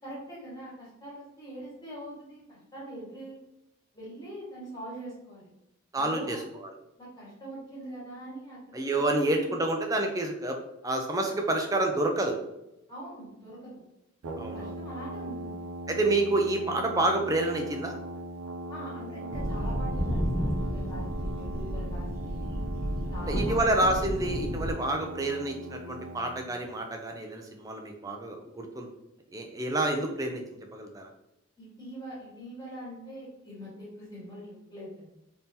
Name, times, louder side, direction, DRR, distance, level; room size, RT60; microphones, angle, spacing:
voice 1, 0.0-3.4 3.9-5.5 6.0-6.4 7.0-8.8 9.2-9.5 12.9-13.8 14.5-15.6 18.7-22.4 23.1-23.8 31.6-35.1, right 1 dB, 20° left, -8 dB, 1.5 m, -43 dB
voice 2, 5.9-6.7 8.7-10.6 10.8-12.4 14.4-14.7 15.9-18.0 23.2-28.9 29.3-30.4 30.7-31.1, right 2 dB, 15° right, 3 dB, 0.4 m, -28 dB
Brass instrument, 14.2-26.5, right 1 dB, 90° right, 0.4 m, -40 dB
sound 1, 19.3-24.7, equal, 45° left, 1.1 m, -31 dB
3.6 x 2.8 x 2.7 m, 0.88 s
head